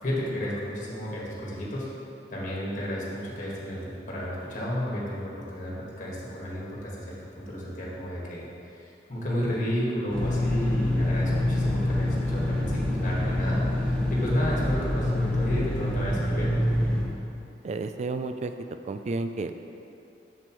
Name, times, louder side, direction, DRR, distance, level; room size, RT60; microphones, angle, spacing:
voice 1, 0.0-1.9 2.3-8.5 8.8-16.5, equal, 45° left, -6 dB, 1.6 m, -32 dB
sound 1, 10.1-17.1, left 1 dB, 5° left, 0.8 m, -26 dB
voice 2, 17.6-18.5 18.9-19.5, right 3 dB, 40° right, 8 dB, 0.3 m, -31 dB
7.6 x 6.9 x 3.1 m, 2.8 s
head